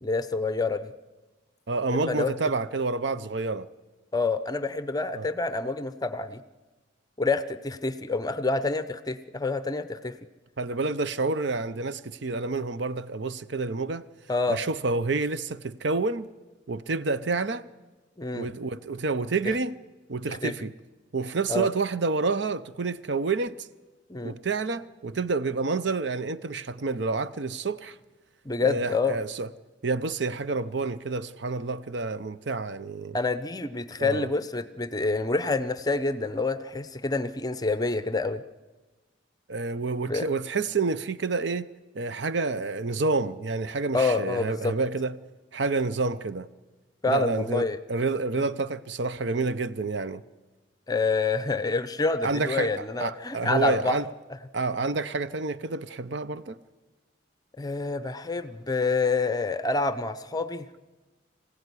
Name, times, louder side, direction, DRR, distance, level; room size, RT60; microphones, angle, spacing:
voice 1, 0.0-0.9 2.1-2.3 4.1-6.4 7.2-10.1 14.3-14.6 18.2-18.5 19.4-19.5 20.3-20.5 21.5-21.7 24.1-24.4 28.4-29.2 33.1-38.4 40.1-40.3 43.9-44.7 47.0-47.8 50.9-53.9 57.6-60.7, left 3 dB, 20° left, 0.7 m, -27 dB
voice 2, 1.7-3.7 5.1-5.2 10.6-14.1 14.5-16.3 16.7-17.7 18.3-19.8 20.1-20.7 21.1-23.7 24.2-28.0 28.6-29.5 29.8-33.2 34.0-34.3 39.5-41.7 41.9-45.2 45.5-46.5 47.1-50.2 52.2-54.1 54.5-56.6, right 3 dB, 65° right, 0.7 m, -29 dB
25.0 x 16.0 x 9.8 m
head